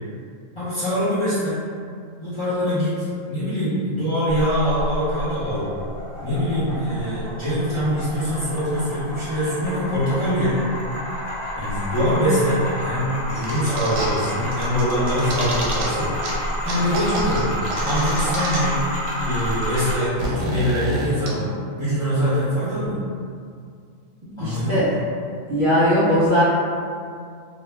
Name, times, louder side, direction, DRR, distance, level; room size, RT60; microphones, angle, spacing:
voice 1, 0.6-1.7 2.2-5.7 6.2-10.6 11.6-16.1 16.6-17.5 17.8-18.8 19.2-21.5 21.8-23.0 24.4-24.8, equal, 30° left, -13 dB, 0.6 m, -23 dB
sound 1, 4.3-20.0, equal, 65° left, 0.9 m, -29 dB
sound 2, 13.4-14.3 14.5-15.9 16.2-16.3 16.7-18.9 19.1-19.2 19.4-21.3, right 1 dB, 90° right, 1.0 m, -29 dB
voice 2, 24.4-24.9 25.5-26.4, equal, 55° right, -9 dB, 0.6 m, -19 dB
2.3 x 2.2 x 3.2 m, 2.2 s
omnidirectional pair, 1.3 m